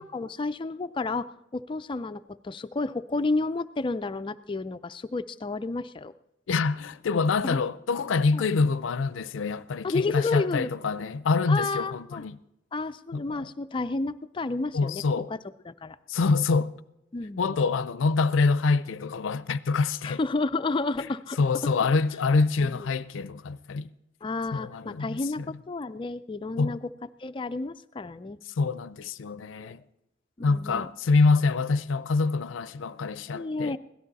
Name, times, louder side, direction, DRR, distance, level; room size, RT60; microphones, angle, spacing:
voice 1, 0.0-6.1 7.4-7.6 8.3-8.5 9.8-10.7 11.5-12.2 12.7-15.0 15.3-15.4 15.7-16.0 17.1-17.5 20.0-21.4 22.6-22.7 24.2-26.9 27.2-28.4 29.6-29.7 30.4-30.9 33.3-33.8, left 3 dB, 25° left, 0.4 m, -31 dB
voice 2, 6.5-12.4 13.1-13.5 14.7-15.3 16.1-16.7 17.4-20.2 21.0-21.1 21.4-23.9 24.5-25.5 26.6-26.8 28.6-29.8 30.4-33.8, left 4 dB, 90° left, 0.5 m, -26 dB
17.0 x 12.5 x 4.0 m
head